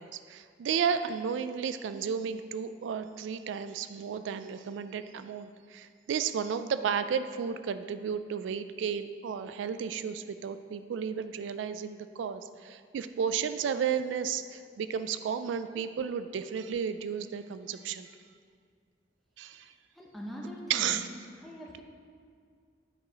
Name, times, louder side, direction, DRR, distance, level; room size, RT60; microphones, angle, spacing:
voice 1, 0.0-18.1 19.4-19.7 20.7-21.1, right 7 dB, 90° right, 11 dB, 0.3 m, -33 dB
voice 2, 20.0-21.0 21.4-21.8, equal, ahead, -3 dB, 0.8 m, -42 dB
9.7 x 4.8 x 4.0 m, 2.1 s
head